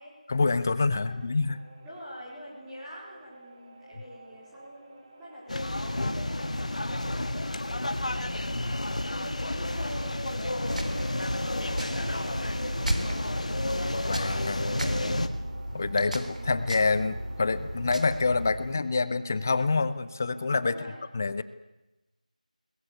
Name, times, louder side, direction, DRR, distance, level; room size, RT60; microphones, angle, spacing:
voice 1, 0.3-1.6 14.0-14.8 15.7-20.7 21.1-21.4, left 3 dB, 20° left, 15 dB, 0.7 m, -27 dB
voice 2, 0.9-1.4 1.8-8.8 9.2-10.9 11.5-13.7 16.1-16.5 20.6-21.0, equal, 5° right, -9 dB, 4.3 m, -45 dB
sound 1, 1.5-20.9, right 2 dB, 35° right, 3.7 m, -53 dB
sound 2, 5.5-15.3, left 1 dB, 55° left, 2.0 m, -31 dB
sound 3, 10.7-18.7, right 1 dB, 65° right, 4.0 m, -35 dB
21.5 x 20.5 x 8.4 m, 1.0 s
figure-of-eight pair, 170°, 4 cm